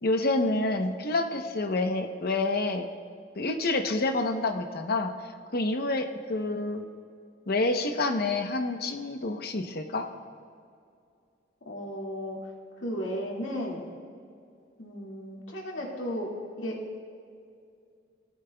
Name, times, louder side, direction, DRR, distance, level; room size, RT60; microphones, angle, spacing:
voice 1, 0.0-2.9 3.4-5.1 5.5-6.8 7.5-10.1, left 2 dB, 55° left, 6 dB, 0.9 m, -28 dB
voice 2, 11.7-12.4 12.8-13.9 14.8-16.3 16.6-16.8, equal, 85° left, -2 dB, 2.1 m, -34 dB
18.5 x 14.0 x 2.3 m, 2.3 s
head